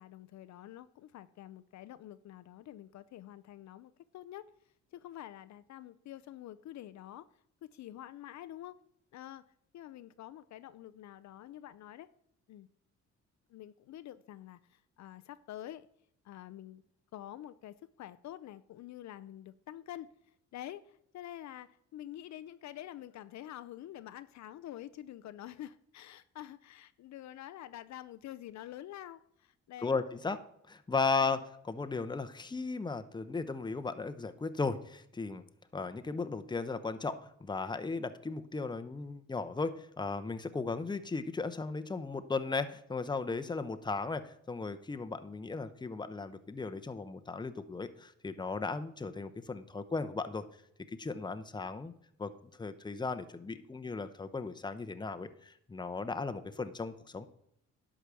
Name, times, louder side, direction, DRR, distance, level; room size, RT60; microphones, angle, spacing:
voice 1, 0.0-4.5 4.9-7.3 7.7-8.8 9.1-9.4 9.7-12.1 12.5-12.7 13.5-15.9 16.2-16.8 17.1-20.1 20.5-30.0, left 12 dB, 65° left, 0.5 m, -47 dB
voice 2, 29.8-30.4 30.7-35.4 35.7-50.4 51.0-51.9 52.2-57.3, left 4 dB, 15° left, 0.8 m, -36 dB
11.0 x 5.0 x 6.9 m
cardioid pair, 90°, 30 cm